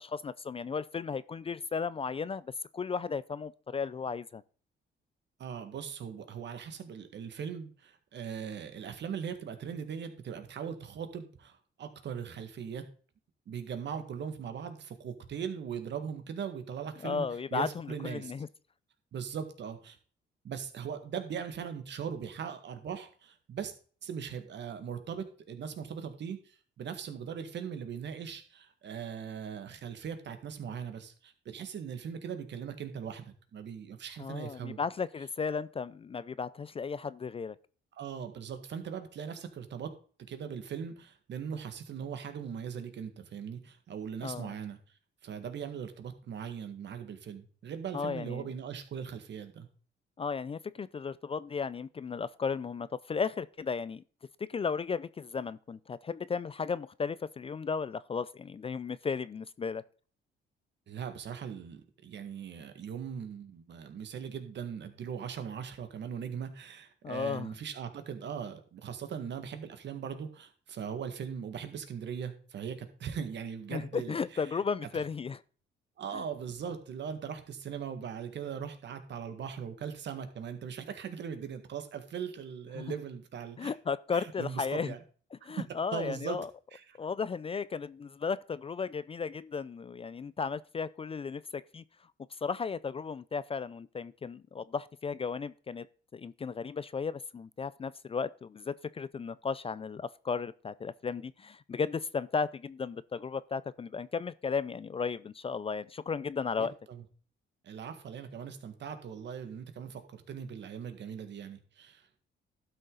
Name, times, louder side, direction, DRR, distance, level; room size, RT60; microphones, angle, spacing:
voice 1, 0.0-4.4 17.0-18.5 34.2-37.6 44.2-44.5 47.9-48.5 50.2-54.0 54.4-59.8 67.0-67.5 73.7-75.4 76.1-76.2 82.7-82.8 83.6-84.9 85.4-86.5 87.0-91.8 92.4-95.9 96.1-106.7, left 5 dB, 30° left, 0.4 m, -35 dB
voice 2, 5.4-12.8 13.5-17.3 17.5-18.3 19.1-20.0 20.4-23.7 24.0-34.8 38.0-39.9 40.3-44.8 45.2-49.7 60.9-74.6 74.9-75.0 76.0-83.7 84.1-85.0 85.4-85.7 85.9-86.4 86.7-87.0 106.6-107.0 107.6-112.2, right 7 dB, 65° right, 1.8 m, -40 dB
12.0 x 6.5 x 3.9 m
cardioid pair, 90°, 20 cm